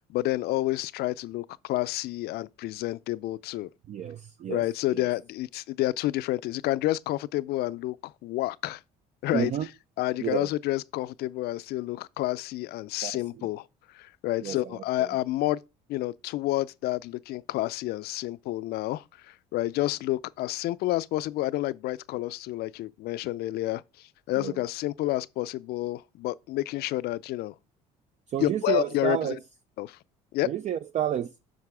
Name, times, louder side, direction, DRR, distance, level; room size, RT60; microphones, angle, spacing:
voice 1, 0.0-3.7 4.5-8.8 9.2-9.5 10.0-13.7 13.9-15.6 15.9-27.5 28.4-29.4 29.8-30.0 30.3-30.5, left 16 dB, 60° left, 0.4 m, -29 dB
voice 2, 3.9-4.6 4.9-5.1 9.3-9.7 10.2-10.5 13.0-13.1 14.4-15.1 24.4-24.6 28.3-29.4 30.4-31.3, right 10 dB, 40° right, 0.4 m, -30 dB
7.4 x 5.8 x 3.5 m
hypercardioid pair, 70°, 18 cm